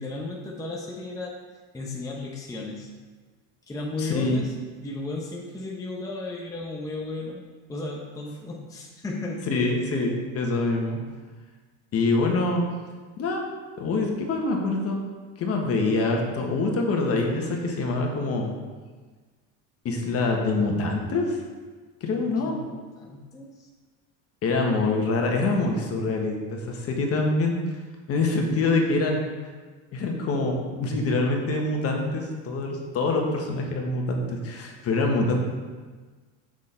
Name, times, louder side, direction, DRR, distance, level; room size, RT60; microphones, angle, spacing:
voice 1, 0.0-1.3 1.7-2.9 3.7-4.5 4.8-7.4 7.7-9.5 22.3-23.7, left 2 dB, 10° left, -1 dB, 0.7 m, -34 dB
voice 2, 4.0-4.4 9.5-11.0 11.9-12.6 13.2-13.4 13.8-15.0 15.4-18.5 19.8-21.4 22.0-22.5 24.4-27.6 28.1-29.2 29.9-35.4, left 3 dB, 40° left, 1 dB, 1.4 m, -25 dB
6.3 x 6.2 x 4.4 m, 1.4 s
supercardioid pair, 120°, 35 cm